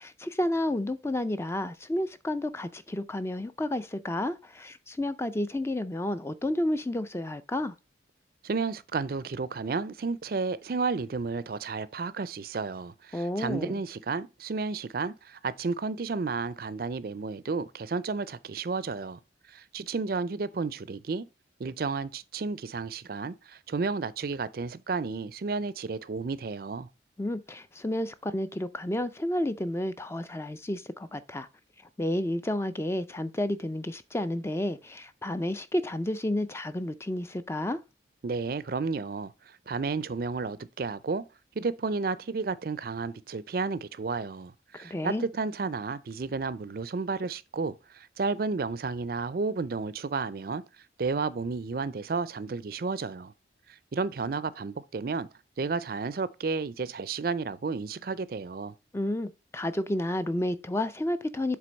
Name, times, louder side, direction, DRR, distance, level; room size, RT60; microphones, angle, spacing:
voice 1, 0.0-7.7 13.1-13.8 27.2-31.5 32.0-37.8 44.7-45.3 58.9-61.6, left 1 dB, 15° left, 0.4 m, -31 dB
voice 2, 8.4-19.2 19.5-21.3 21.6-26.9 38.2-41.2 41.6-50.6 51.0-53.3 53.7-55.3 55.6-58.7, right 4 dB, 50° right, 0.4 m, -32 dB
7.6 x 3.4 x 5.2 m
head